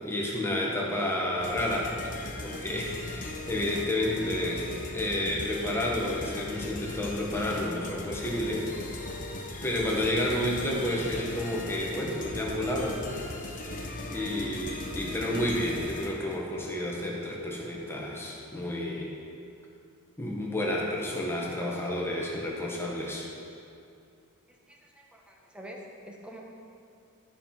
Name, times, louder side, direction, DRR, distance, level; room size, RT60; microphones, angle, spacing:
voice 1, 0.0-1.9 2.4-4.7 4.9-8.7 9.6-13.0 13.4-13.5 14.1-19.1 20.2-23.3, left 1 dB, 10° left, -3 dB, 1.2 m, -30 dB
sound 1, 1.4-16.5, left 2 dB, 40° left, 0.9 m, -38 dB
voice 2, 24.7-26.4, equal, 5° right, -1 dB, 0.9 m, -46 dB
12.5 x 5.7 x 4.4 m, 2.5 s
head